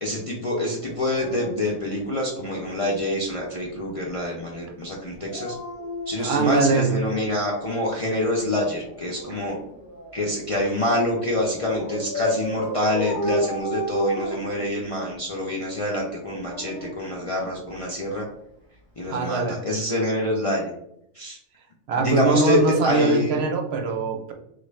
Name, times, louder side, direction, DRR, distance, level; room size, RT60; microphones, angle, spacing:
voice 1, 0.0-5.6 6.1-9.6 10.1-18.3 19.0-20.7 21.1-21.4 22.0-22.6 22.8-23.3, left 1 dB, 40° left, -4 dB, 0.5 m, -26 dB
Dog, 0.8-2.7 5.1-7.5 8.8-10.5 11.6-15.2 16.1-17.8 19.0-19.3, equal, 25° right, 0.7 m, -33 dB
voice 2, 6.2-6.9 19.1-19.6 21.9-24.3, right 3 dB, 65° right, 4 dB, 0.8 m, -22 dB
3.6 x 2.4 x 3.1 m, 0.76 s
omnidirectional pair, 1.2 m